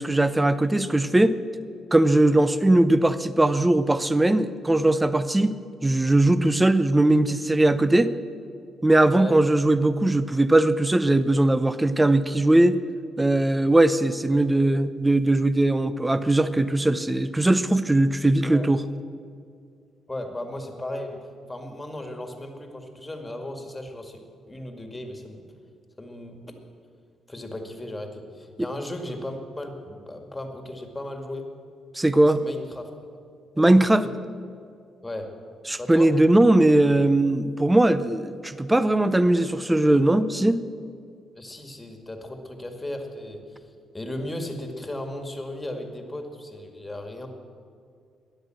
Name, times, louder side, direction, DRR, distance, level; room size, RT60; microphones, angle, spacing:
voice 1, 0.0-1.4 1.9-8.1 8.8-12.8 13.2-18.8 31.9-32.4 33.6-34.1 35.7-40.6, right 1 dB, 10° right, 14 dB, 0.6 m, -20 dB
voice 2, 20.1-21.2 21.5-24.2 24.5-25.4 26.0-26.6 27.3-31.5 32.3-32.9 33.6-34.1 35.0-35.3 35.8-36.1 41.4-47.3, left 1 dB, 15° left, 4 dB, 2.0 m, -36 dB
13.5 x 10.5 x 7.7 m, 2.3 s
cardioid pair, 90°, 0 cm